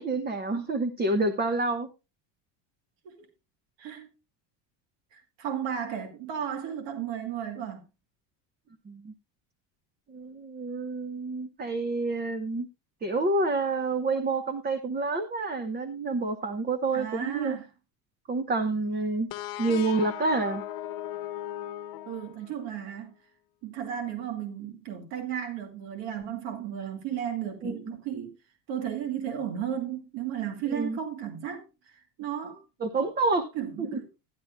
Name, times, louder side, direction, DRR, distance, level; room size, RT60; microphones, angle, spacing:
voice 1, 0.0-1.9 8.9-9.1 10.1-12.7 13.0-17.6 18.3-19.3 19.6-20.6 27.6-27.8 30.7-31.0 32.8-33.5 33.9-34.0, right 3 dB, 20° right, 0.8 m, -28 dB
voice 2, 3.8-4.1 5.1-7.8 16.9-17.7 22.1-23.1 23.6-28.3 28.7-32.6 33.5-34.0, right 9 dB, 65° right, 2.1 m, -34 dB
sound 1, 19.3-22.8, left 12 dB, 45° left, 1.1 m, -38 dB
13.0 x 11.5 x 2.2 m
cardioid pair, 150°, 46 cm